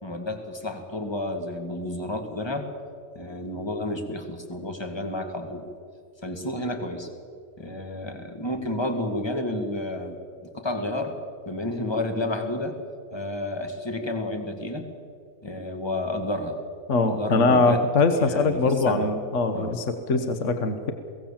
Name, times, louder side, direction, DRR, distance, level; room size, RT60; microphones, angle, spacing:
voice 1, 0.0-2.7 3.2-5.6 6.2-7.1 7.6-11.2 11.5-12.8 13.1-14.9 15.4-16.6 17.1-17.8 18.2-19.1 19.5-19.8, left 1 dB, 15° left, 5 dB, 1.9 m, -31 dB
voice 2, 16.9-20.9, left 3 dB, 55° left, 7 dB, 1.4 m, -22 dB
23.0 x 17.0 x 7.3 m, 2.3 s
omnidirectional pair, 1.6 m